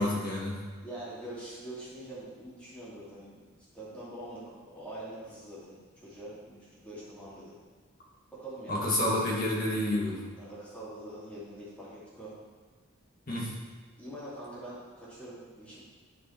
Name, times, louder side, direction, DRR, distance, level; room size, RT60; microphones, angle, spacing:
voice 1, 0.0-0.6 8.7-10.2 13.3-13.5, left 1 dB, 45° left, -4 dB, 1.8 m, -29 dB
voice 2, 0.8-3.4 3.7-7.6 8.3-9.2 10.3-12.4 14.0-15.8, right 1 dB, 5° left, -9 dB, 2.6 m, -44 dB
9.3 x 4.7 x 4.3 m, 1.3 s
head